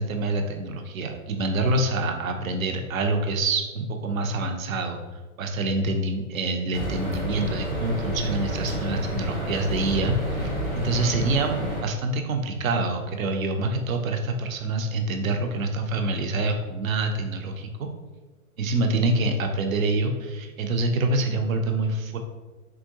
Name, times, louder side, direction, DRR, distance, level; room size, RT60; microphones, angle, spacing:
voice 1, 0.0-5.0 5.4-10.4 10.7-11.5 11.8-17.9 18.6-22.2, right 2 dB, 70° right, 5 dB, 0.5 m, -26 dB
sound 1, 6.7-11.8, right 1 dB, 5° left, 0.5 m, -29 dB
3.6 x 2.2 x 2.7 m, 1.2 s
figure-of-eight pair, 115°, 43 cm